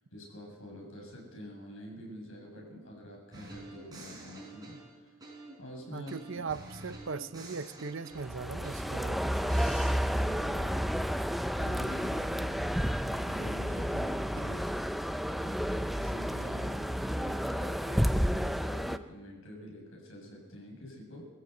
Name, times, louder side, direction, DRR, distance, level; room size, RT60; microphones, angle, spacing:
voice 1, 0.1-5.1 5.6-6.4 10.0-10.9 11.6-14.6 15.4-21.3, equal, 65° left, -1 dB, 7.3 m, -46 dB
sound 1, 3.3-5.7 6.1-9.1 9.5-9.9, right 2 dB, 20° right, 6.5 m, -47 dB
voice 2, 5.9-9.6, right 4 dB, 60° right, 12 dB, 0.8 m, -39 dB
sound 2, 8.2-19.0, equal, ahead, 0.5 m, -31 dB
22.0 x 15.0 x 8.1 m, 1.3 s
head